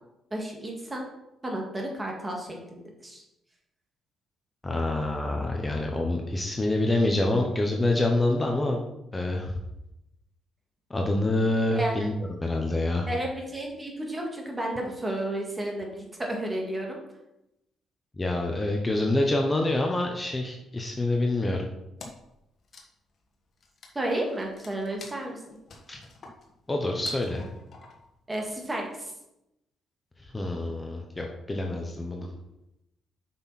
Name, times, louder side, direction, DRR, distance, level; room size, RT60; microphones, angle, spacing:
voice 1, 0.3-1.0 1.4-3.2 11.7-12.0 13.1-17.0 23.9-25.4 28.3-29.1 32.2-32.3, right 1 dB, 15° right, 0 dB, 2.2 m, -32 dB
voice 2, 4.6-8.8 9.1-9.6 10.9-13.1 18.2-21.7 25.9-26.0 26.7-27.5 30.2-32.3, left 2 dB, 20° left, 1 dB, 1.0 m, -26 dB
Wood, 22.0-22.4 22.6-28.2, left 3 dB, 50° left, 1.6 m, -48 dB
7.7 x 6.0 x 4.3 m, 0.88 s
cardioid pair, 90°, 0 cm